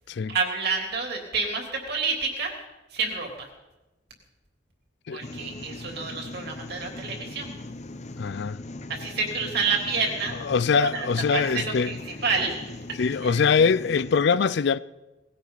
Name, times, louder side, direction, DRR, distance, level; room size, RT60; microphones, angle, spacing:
voice 1, 0.3-2.5 2.9-3.5 5.1-7.5 8.9-10.3 10.8-11.1 11.3-13.4, right 4 dB, 55° right, 3.4 m, -29 dB
sound 1, 5.2-14.2, left 2 dB, 35° left, 0.8 m, -40 dB
voice 2, 8.2-8.6 10.4-11.9 13.0-14.8, left 5 dB, 60° left, 0.4 m, -23 dB
20.0 x 16.0 x 4.1 m
head